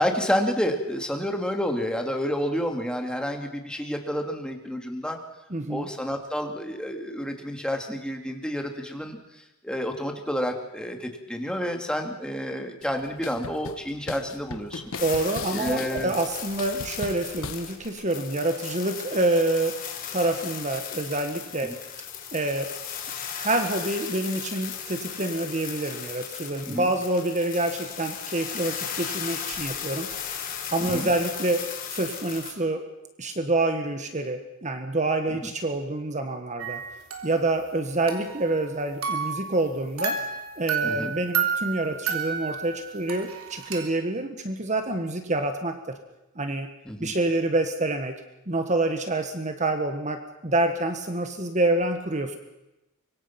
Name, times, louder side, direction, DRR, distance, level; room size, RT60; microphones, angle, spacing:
voice 1, 0.0-5.2 5.7-9.2 9.6-14.9 15.5-16.1 21.6-21.7 26.7-26.9 30.8-31.1 35.4-35.5 40.8-41.1 46.9-47.1, equal, 5° left, 3 dB, 2.6 m, -29 dB
voice 2, 5.5-5.9 15.0-19.8 20.1-21.7 22.3-22.7 23.3-30.1 30.7-32.8 33.2-36.8 37.2-40.2 40.6-46.0 46.3-46.7 47.0-48.2 48.5-52.4, right 2 dB, 35° right, 6 dB, 1.6 m, -27 dB
sound 1, 12.8-17.9, left 4 dB, 70° left, 1.2 m, -39 dB
sound 2, 14.9-32.5, left 8 dB, 45° left, 4.3 m, -36 dB
sound 3, 36.6-37.8 38.1-39.5 40.0-43.9, right 6 dB, 70° right, 3.7 m, -31 dB
25.0 x 23.5 x 6.0 m, 0.95 s
head